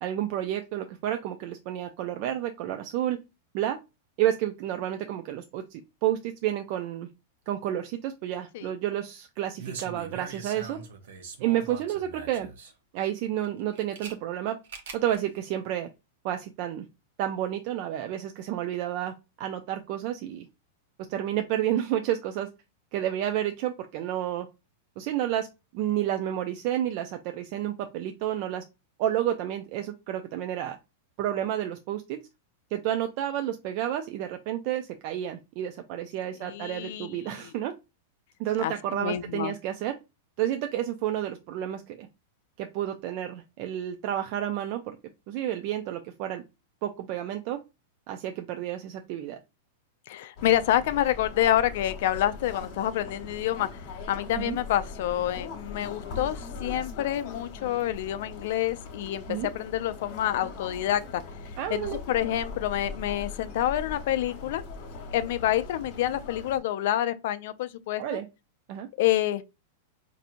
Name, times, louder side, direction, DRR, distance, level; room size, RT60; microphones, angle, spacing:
voice 1, 0.0-3.2 3.5-3.8 4.2-7.1 7.5-10.8 11.4-12.5 12.9-14.6 14.9-15.9 16.2-16.9 17.2-20.5 21.1-22.5 22.9-24.5 25.0-25.5 25.7-28.6 29.0-30.8 31.2-32.2 32.7-37.7 38.4-40.0 40.4-42.1 42.6-45.0 45.3-46.4 46.8-47.6 48.1-49.4 54.4-54.6 59.3-59.5 61.6-62.0 68.0-68.3 68.7-68.9, right 11 dB, 50° right, 0.4 m, -30 dB
sound 1, 9.6-12.7 13.4-14.1 14.6-15.2 15.4-15.5, right 5 dB, 75° right, 0.8 m, -42 dB
voice 2, 36.4-37.5 38.6-39.5 50.1-53.7 54.1-61.2 61.7-64.6 65.1-68.2 69.0-69.4, left 12 dB, 65° left, 0.4 m, -28 dB
sound 2, 50.4-66.6, left 4 dB, 50° left, 1.2 m, -40 dB
4.2 x 2.6 x 2.5 m
hypercardioid pair, 135°, 0 cm